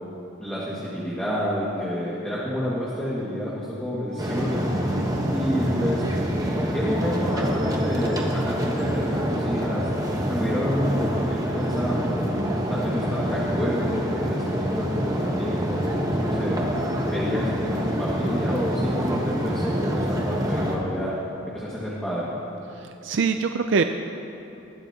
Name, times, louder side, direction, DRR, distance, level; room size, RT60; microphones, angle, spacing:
voice 1, 0.4-4.7 5.3-6.0 6.7-9.9 10.3-12.3 12.7-16.6 17.0-21.1 21.4-22.3, equal, 5° left, -9 dB, 1.8 m, -29 dB
sound 1, 4.2-20.8, equal, 20° right, 1.1 m, -26 dB
voice 2, 4.9-5.3 22.7-23.8, right 5 dB, 70° right, 7 dB, 0.4 m, -25 dB
20.0 x 14.5 x 2.9 m, 2.9 s
head